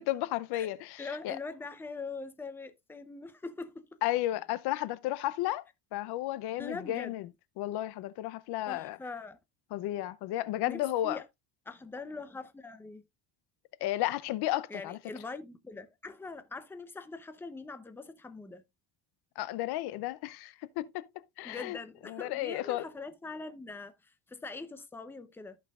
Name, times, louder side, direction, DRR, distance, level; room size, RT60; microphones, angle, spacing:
voice 1, 0.0-1.4 4.0-5.6 5.9-7.2 7.6-9.0 9.7-11.2 13.8-15.0 19.4-21.1 21.4-21.8 22.1-22.8, left 15 dB, 65° left, 0.7 m, -33 dB
voice 2, 1.0-3.8 6.6-7.2 8.7-9.4 10.6-11.2 11.7-13.0 14.7-18.6 21.4-25.6, left 3 dB, 5° left, 0.7 m, -42 dB
14.0 x 5.6 x 2.4 m
cardioid pair, 145°, 42 cm